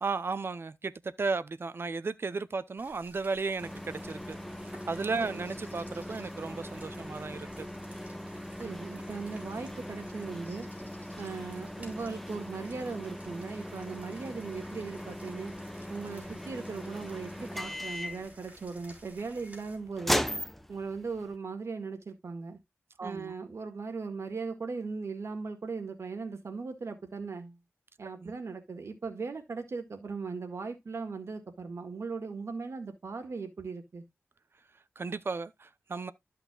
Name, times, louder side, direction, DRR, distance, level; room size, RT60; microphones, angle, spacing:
voice 1, 0.0-4.4 4.9-7.7 23.0-23.3 28.1-28.4 35.0-36.1, right 4 dB, 55° right, 0.6 m, -34 dB
sound 1, 2.8-19.8, right 1 dB, 30° right, 4.0 m, -55 dB
sound 2, 3.6-21.3, equal, 5° left, 0.8 m, -39 dB
Bird, 5.5-6.3 8.9-9.2 10.5-11.7, left 1 dB, 35° left, 3.6 m, -59 dB
voice 2, 8.6-10.7 11.2-15.5 15.9-20.2 20.7-22.6 23.0-27.6 28.0-34.0, right 4 dB, 75° right, 1.8 m, -38 dB
13.0 x 5.8 x 2.4 m
wide cardioid pair, 75°, 5 cm